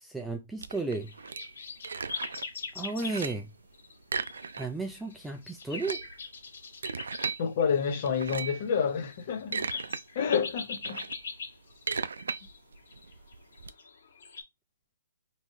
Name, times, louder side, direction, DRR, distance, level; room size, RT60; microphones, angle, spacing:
voice 1, 0.0-1.1 2.8-3.5 4.6-6.0, right 3 dB, 5° right, 0.4 m, -34 dB
sound 1, 0.6-2.5 2.8-3.5 4.0-4.9 5.2-5.3 5.6-7.4 8.0-8.7 9.2-10.0 10.4-13.7, right 5 dB, 85° right, 0.4 m, -36 dB
sound 2, 0.7-3.3 3.7-3.9 4.2-4.6 4.9-14.4, left 5 dB, 65° left, 1.8 m, -41 dB
voice 2, 7.4-9.6 10.1-11.0, left 6 dB, 40° left, 1.0 m, -28 dB
4.3 x 3.1 x 2.8 m
hypercardioid pair, 160°, 0 cm